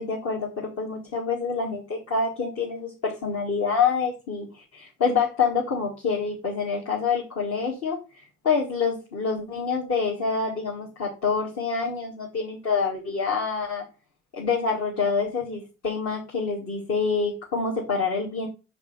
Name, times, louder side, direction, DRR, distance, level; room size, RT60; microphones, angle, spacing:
voice 1, 0.0-13.8 14.3-18.5, left 5 dB, 55° left, -3 dB, 2.2 m, -27 dB
4.7 x 4.6 x 5.8 m, 0.30 s
hypercardioid pair, 55°, 33 cm